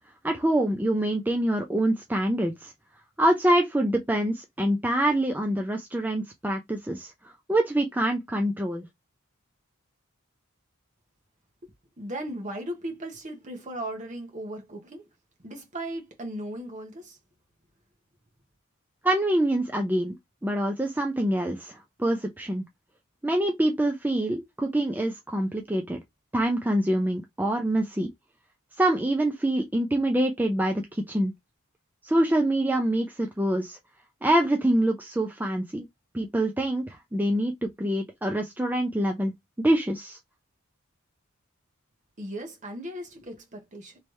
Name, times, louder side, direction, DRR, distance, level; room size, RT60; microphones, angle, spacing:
voice 1, 0.2-2.7 3.2-8.8 19.0-20.2 20.4-22.6 23.2-26.0 26.3-28.1 28.8-31.3 32.0-33.8 34.2-35.8 36.1-39.3 39.6-40.2, right 1 dB, 10° right, 0.4 m, -25 dB
voice 2, 12.0-15.1 15.4-17.2 42.2-44.0, right 1 dB, 35° right, 1.1 m, -37 dB
3.3 x 3.1 x 3.0 m
head